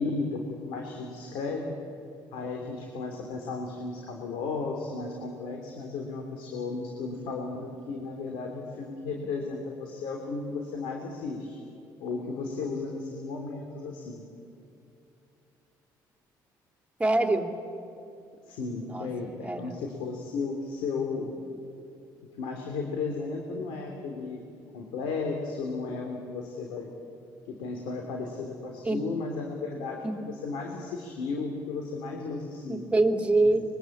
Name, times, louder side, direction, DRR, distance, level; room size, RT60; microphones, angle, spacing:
voice 1, 0.0-1.7 2.3-11.6 12.0-14.2 18.4-21.3 22.4-24.5 24.7-26.9 27.5-32.9, left 4 dB, 80° left, 1 dB, 3.2 m, -34 dB
voice 2, 17.0-17.5 18.9-19.1 19.4-19.7 28.8-29.0 30.0-30.1 32.7-33.6, right 2 dB, 15° right, 5 dB, 2.7 m, -24 dB
25.0 x 23.0 x 8.6 m, 2.6 s
supercardioid pair, 80°, 8 cm